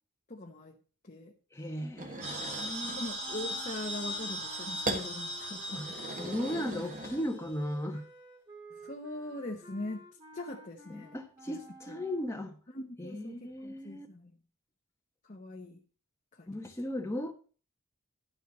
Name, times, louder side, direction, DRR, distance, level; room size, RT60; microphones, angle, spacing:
voice 1, 0.3-0.8 1.0-1.3 3.0-6.0 8.7-10.0 10.3-11.2 11.5-11.6 11.9-12.0 12.7-14.3 15.3-15.8 16.3-16.5, left 2 dB, 35° left, 1.0 m, -41 dB
voice 2, 1.5-3.1 5.7-5.9 6.2-8.1 10.9-12.5 13.0-14.1 16.5-17.3, left 1 dB, 10° left, 1.3 m, -37 dB
sound 1, 2.0-3.0 4.8-5.1 5.7-7.6, right 2 dB, 35° right, 1.3 m, -39 dB
sound 2, 2.2-7.5, equal, 75° right, 4.6 m, -39 dB
sound 3, 3.2-12.4, right 2 dB, 15° right, 2.3 m, -52 dB
11.5 x 4.6 x 7.2 m
head